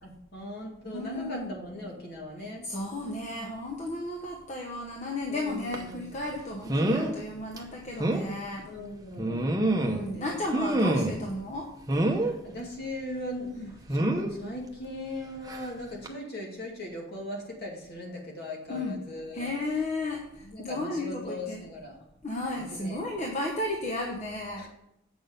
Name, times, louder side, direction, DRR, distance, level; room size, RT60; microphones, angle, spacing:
voice 1, 0.0-2.7 5.3-6.0 8.7-9.6 10.1-11.0 12.2-19.5 20.4-22.0 22.6-23.2 24.6-24.7, left 1 dB, 50° left, -1 dB, 2.2 m, -39 dB
voice 2, 0.8-1.5 2.4-8.7 9.7-11.7 13.5-13.7 18.7-19.0 19.3-21.6 22.2-24.7, left 2 dB, 35° left, 1 dB, 1.0 m, -34 dB
sound 1, 5.7-5.9 6.7-7.1 7.6-7.7 8.0-8.3 9.2-10.1 10.5-11.3 11.9-12.3 13.9-14.3 15.5-15.7 16.0-16.1, right 1 dB, 20° right, 0.8 m, -26 dB
7.9 x 6.1 x 5.2 m, 0.80 s
head